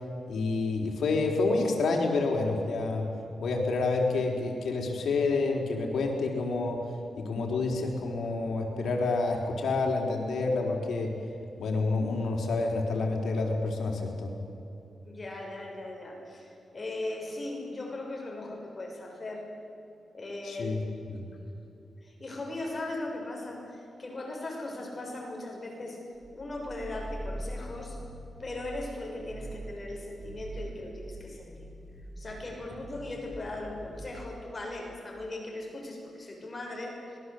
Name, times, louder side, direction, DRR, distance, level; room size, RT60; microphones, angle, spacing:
voice 1, 0.3-3.1 3.4-6.8 7.2-11.1 11.6-14.4 20.4-20.8 21.1-21.2, left 3 dB, 80° left, 1 dB, 4.6 m, -28 dB
voice 2, 15.0-19.5 20.1-21.2 22.0-26.0 26.3-28.0 28.4-31.7 32.2-37.2, left 2 dB, 30° left, 0 dB, 6.2 m, -38 dB
sound 1, 26.1-28.8 29.2-29.7 30.1-34.4, right 1 dB, 20° right, 6.0 m, -43 dB
26.0 x 21.5 x 8.2 m, 2.9 s
wide cardioid pair, 110°, 0 cm